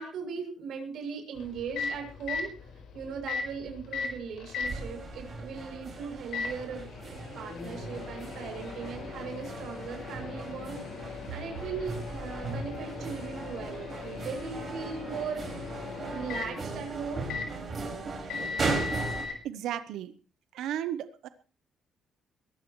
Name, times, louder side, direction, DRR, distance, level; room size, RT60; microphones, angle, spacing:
voice 1, 0.0-6.9 7.4-10.8 11.3-15.4 16.1-17.3, right 6 dB, 65° right, 4 dB, 7.1 m, -38 dB
Microwave oven, 1.4-19.4, left 5 dB, 75° left, 4.6 m, -39 dB
sound 1, 4.6-19.2, right 3 dB, 35° right, 5.3 m, -38 dB
voice 2, 19.4-20.1 20.5-21.3, right 11 dB, 85° right, 12 dB, 0.9 m, -34 dB
21.5 x 15.0 x 3.2 m, 0.36 s
cardioid pair, 140°, 0 cm